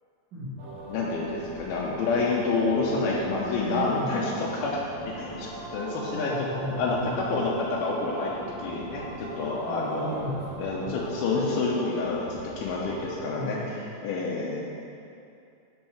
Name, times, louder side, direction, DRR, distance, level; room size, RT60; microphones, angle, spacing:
sound 1, 0.6-13.2, right 1 dB, 70° right, 2.5 m, -40 dB
voice 1, 0.9-4.8 5.1-6.5 6.8-8.3 8.6-9.0 9.4-10.1 10.6-14.6, left 3 dB, 85° left, -4 dB, 2.7 m, -28 dB
voice 2, 3.6-4.3 6.1-7.5 9.7-11.0 13.2-13.9, equal, 45° right, -12 dB, 1.6 m, -35 dB
12.0 x 5.3 x 3.1 m, 2.6 s
omnidirectional pair, 4.4 m